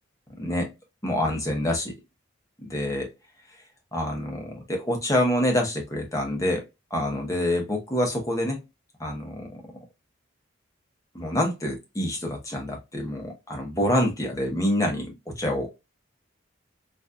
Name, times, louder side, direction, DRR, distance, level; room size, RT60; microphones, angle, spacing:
voice 1, 0.4-0.7 1.0-2.0 2.6-3.1 3.9-6.6 6.9-8.6 9.0-9.5 11.1-15.8, left 1 dB, 15° left, 0.9 m, -26 dB
4.0 x 2.6 x 2.3 m
head